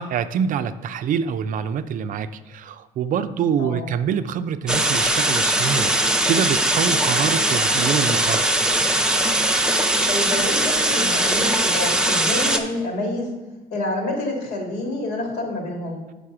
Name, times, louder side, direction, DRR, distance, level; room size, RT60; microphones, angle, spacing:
voice 1, 0.0-8.6, right 7 dB, 50° right, 12 dB, 0.4 m, -25 dB
voice 2, 3.6-3.9 10.0-13.4 13.7-16.0, left 1 dB, 80° left, 1 dB, 1.9 m, -28 dB
sound 1, 4.7-12.6, right 1 dB, 5° right, 0.6 m, -20 dB
5.1 x 4.9 x 5.8 m, 1.2 s
cardioid pair, 110°, 17 cm